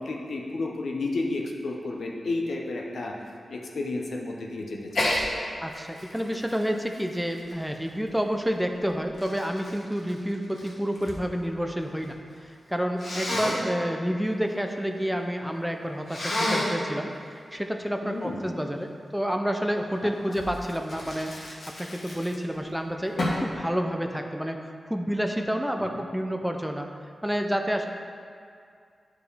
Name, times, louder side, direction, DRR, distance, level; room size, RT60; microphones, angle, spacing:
voice 1, 0.0-3.1 3.5-5.1 13.3-13.6 18.0-18.4 25.8-26.0, left 2 dB, 75° left, 0 dB, 0.8 m, -32 dB
Sneeze, 4.9-5.2 5.7-8.1 8.8-11.2 11.5-12.1 13.0-13.6 16.1-16.8 20.3-22.6 23.2-23.5, left 1 dB, 55° left, 1.5 m, -31 dB
voice 2, 5.6-24.6 24.9-26.9 27.2-27.9, equal, 5° right, 4 dB, 0.4 m, -29 dB
10.0 x 4.9 x 3.3 m, 2.2 s
wide cardioid pair, 135°, 0 cm